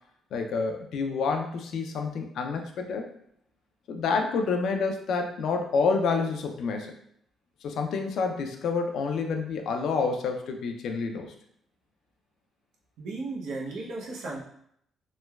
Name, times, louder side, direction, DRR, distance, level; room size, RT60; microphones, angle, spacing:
voice 1, 0.3-3.1 3.9-6.9 7.6-11.3, left 4 dB, 75° left, 4 dB, 0.4 m, -28 dB
voice 2, 13.0-14.4, right 3 dB, 80° right, -3 dB, 0.6 m, -35 dB
3.1 x 2.1 x 2.2 m, 0.70 s
cardioid pair, 90°, 0 cm